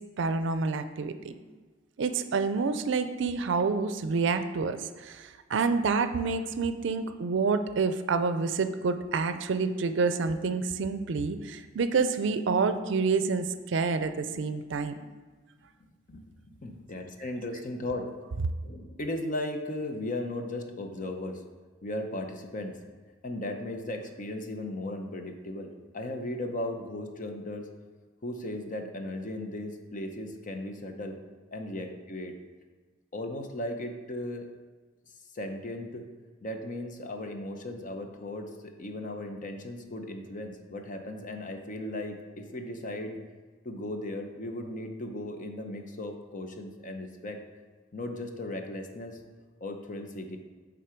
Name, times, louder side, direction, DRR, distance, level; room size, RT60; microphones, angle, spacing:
voice 1, 0.2-1.3 2.0-15.0, right 4 dB, 70° right, 10 dB, 0.4 m, -28 dB
voice 2, 15.8-18.1 18.6-21.4 21.8-22.8 23.2-27.7 28.2-31.2 31.5-32.3 33.1-34.5 35.3-36.0 36.4-43.2 43.6-47.4 47.9-49.2 49.6-50.4, left 1 dB, 45° left, 5 dB, 0.7 m, -36 dB
8.5 x 3.8 x 4.5 m, 1.4 s
head